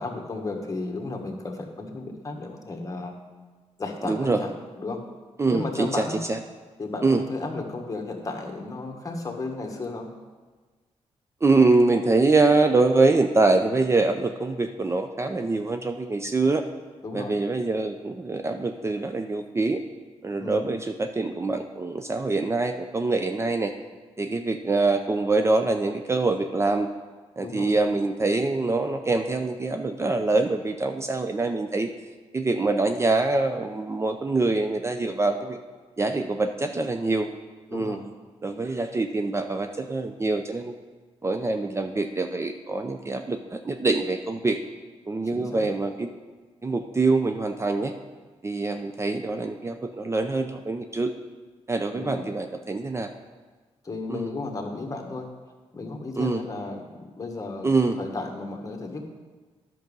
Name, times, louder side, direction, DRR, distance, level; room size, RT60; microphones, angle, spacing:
voice 1, 0.0-3.1 3.8-4.5 4.8-5.0 5.5-6.2 6.8-10.1 17.0-17.4 20.4-20.7 27.4-27.8 37.7-38.1 45.3-45.7 51.9-52.3 53.8-55.3 55.7-57.7 58.0-59.1, left 3 dB, 30° left, 1 dB, 1.5 m, -34 dB
voice 2, 4.1-4.4 5.4-6.0 6.3-6.4 7.0-7.2 11.4-16.6 17.1-19.8 20.2-23.7 24.2-26.9 27.4-31.9 32.3-35.6 36.0-37.3 37.7-38.0 38.4-40.7 41.2-44.6 45.1-46.1 46.6-47.9 48.4-51.1 51.7-53.1 54.1-54.3 56.2-56.4 57.6-58.0, right 3 dB, 25° right, 6 dB, 0.5 m, -24 dB
10.5 x 6.1 x 5.4 m, 1.4 s
cardioid pair, 95°, 11 cm